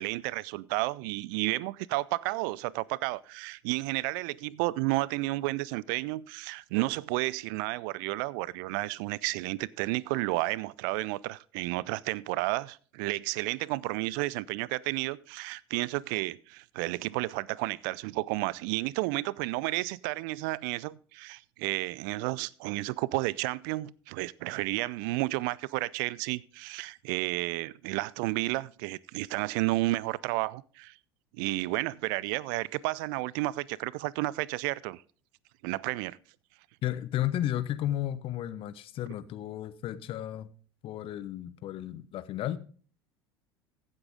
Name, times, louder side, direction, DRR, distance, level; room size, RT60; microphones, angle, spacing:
voice 1, 0.0-30.9 31.3-35.0 35.6-36.2, right 20 dB, 55° right, 0.4 m, -32 dB
voice 2, 36.8-40.5 40.8-42.6, left 12 dB, 45° left, 0.9 m, -33 dB
15.0 x 8.2 x 3.6 m
figure-of-eight pair, 70°, 13 cm